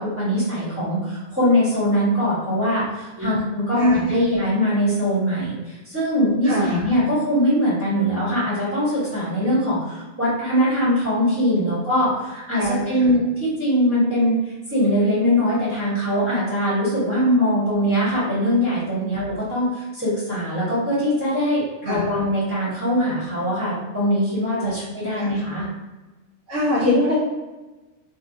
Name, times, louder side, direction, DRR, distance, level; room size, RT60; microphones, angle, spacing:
voice 1, 0.0-14.4 14.7-25.7, equal, 10° right, -11 dB, 1.0 m, -22 dB
voice 2, 6.4-6.9 11.6-11.7 12.6-13.1 19.0-19.1 21.8-22.1 24.6-24.8 25.1-25.3 26.5-27.2, left 1 dB, 70° right, -8 dB, 1.0 m, -24 dB
2.6 x 2.2 x 2.6 m, 1.2 s
omnidirectional pair, 1.4 m